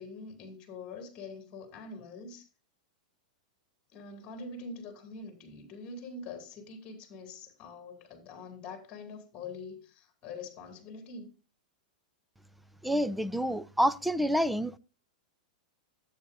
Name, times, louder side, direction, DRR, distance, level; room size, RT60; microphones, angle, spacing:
voice 1, 0.0-2.5 3.9-11.3, left 3 dB, 25° left, 2.5 m, -44 dB
voice 2, 12.8-14.8, equal, ahead, 0.4 m, -28 dB
12.0 x 8.3 x 2.5 m
supercardioid pair, 155°, 4 cm